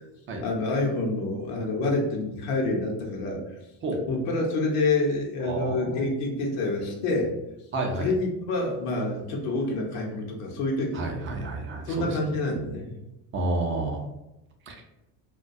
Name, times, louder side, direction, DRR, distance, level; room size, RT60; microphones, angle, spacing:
voice 1, 0.4-3.4 4.1-7.4 8.0-11.0 11.8-13.0, left 2 dB, 80° left, -1 dB, 0.7 m, -27 dB
voice 2, 5.4-6.2 7.7-8.1 10.9-12.2 13.3-14.1 14.7-14.8, right 2 dB, 25° right, 2 dB, 0.4 m, -30 dB
2.2 x 2.2 x 2.5 m, 0.93 s
supercardioid pair, 95°, 49 cm